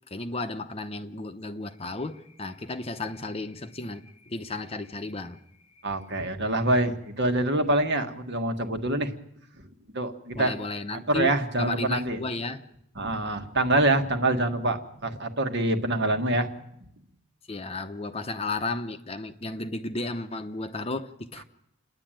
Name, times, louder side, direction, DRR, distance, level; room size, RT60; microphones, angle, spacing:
voice 1, 0.1-5.4 10.3-11.3 11.6-12.6 17.5-21.4, left 2 dB, 25° left, 8 dB, 0.8 m, -33 dB
voice 2, 5.8-9.1 9.9-10.5 10.9-12.2 13.0-16.5, right 1 dB, 55° right, 6 dB, 1.6 m, -25 dB
28.5 x 10.5 x 9.0 m, 0.78 s
head